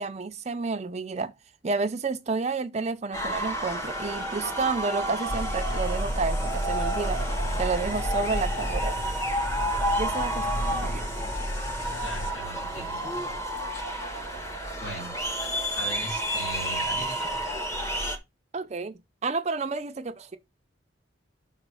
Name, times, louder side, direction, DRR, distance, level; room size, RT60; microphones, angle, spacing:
voice 1, 0.0-1.3 1.6-7.2 7.6-9.0 10.0-11.0 18.5-20.4, right 4 dB, 35° right, 0.5 m, -30 dB
sound 1, 3.1-18.2, right 1 dB, 15° left, 1.3 m, -31 dB
sound 2, 5.2-12.3, equal, 45° left, 1.6 m, -31 dB
voice 2, 10.4-11.0 12.0-13.3 13.7-13.8 14.8-17.4, equal, 80° left, 3.7 m, -40 dB
5.9 x 4.1 x 6.2 m
head